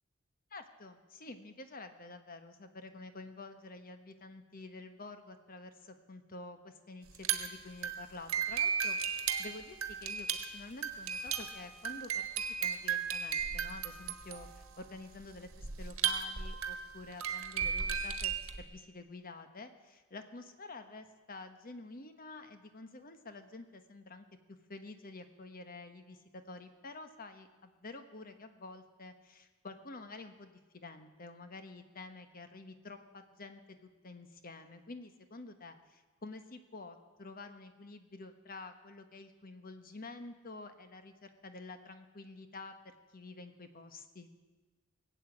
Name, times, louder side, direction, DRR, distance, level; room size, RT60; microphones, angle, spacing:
voice 1, 0.5-24.3 24.7-33.8 34.0-44.3, left 3 dB, 45° left, 8 dB, 1.2 m, -49 dB
sound 1, 7.1-18.6, right 7 dB, 85° right, 1.4 m, -35 dB
19.0 x 8.1 x 8.5 m, 1.2 s
head